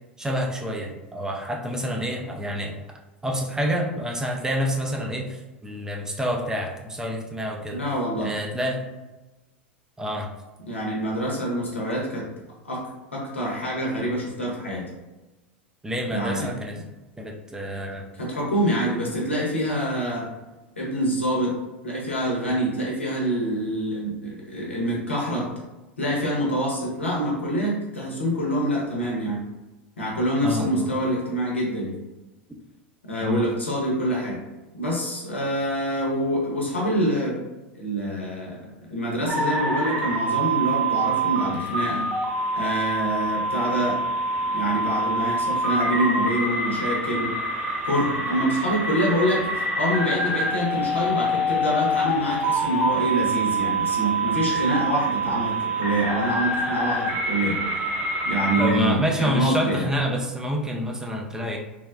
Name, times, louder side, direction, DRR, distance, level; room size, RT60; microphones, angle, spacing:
voice 1, 0.2-2.8 3.2-7.8 8.2-8.9 10.0-10.3 15.8-16.8 17.2-18.0 30.4-30.9 33.2-33.5 58.6-61.6, equal, 10° right, 1 dB, 0.4 m, -27 dB
voice 2, 7.7-8.3 10.7-12.3 12.6-12.8 13.1-14.9 16.0-16.5 18.2-20.3 20.8-21.6 21.8-25.5 26.0-29.4 30.0-32.0 33.0-34.4 34.7-37.4 37.7-38.6 38.9-42.1 42.5-44.0 44.5-47.3 47.8-49.4 49.8-57.6 58.2-59.9, equal, 85° left, -4 dB, 0.9 m, -26 dB
sound 1, 39.3-58.7, right 1 dB, 35° right, 0.8 m, -26 dB
3.3 x 2.1 x 2.4 m, 1.1 s
figure-of-eight pair, 85°, 6 cm